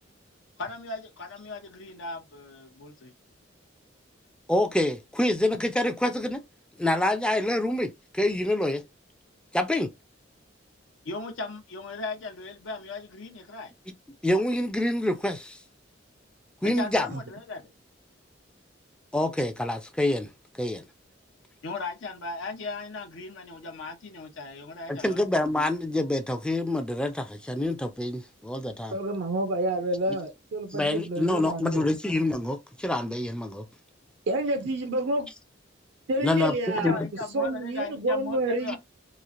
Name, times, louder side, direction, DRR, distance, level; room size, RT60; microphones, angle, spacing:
voice 1, 0.6-3.1 11.0-13.7 16.6-17.7 21.6-25.2 36.7-38.8, left 3 dB, 80° left, 0.6 m, -37 dB
voice 2, 4.5-6.4 6.8-8.8 9.5-9.9 14.2-15.6 16.6-17.1 19.1-20.3 20.6-20.9 24.9-29.0 30.7-33.6 36.2-37.1, left 1 dB, 5° left, 0.4 m, -26 dB
voice 3, 28.9-31.8 34.3-35.3 36.1-37.0 37.3-38.8, right 1 dB, 65° right, 0.5 m, -29 dB
3.0 x 2.4 x 2.4 m
head